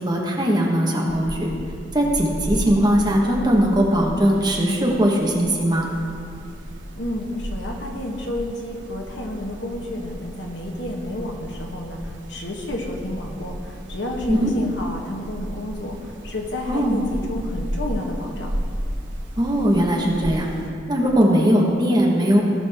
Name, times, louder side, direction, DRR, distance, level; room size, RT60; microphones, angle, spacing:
voice 1, 0.0-1.5 1.9-5.9 14.3-14.5 16.7-17.0 19.4-20.5 20.9-22.4, equal, 20° right, -2 dB, 1.4 m, -19 dB
sound 1, 1.1-20.7, equal, 80° right, 1.5 m, -34 dB
voice 2, 6.9-18.5, left 1 dB, 75° left, 1 dB, 1.4 m, -31 dB
17.5 x 6.3 x 3.6 m, 2.4 s
head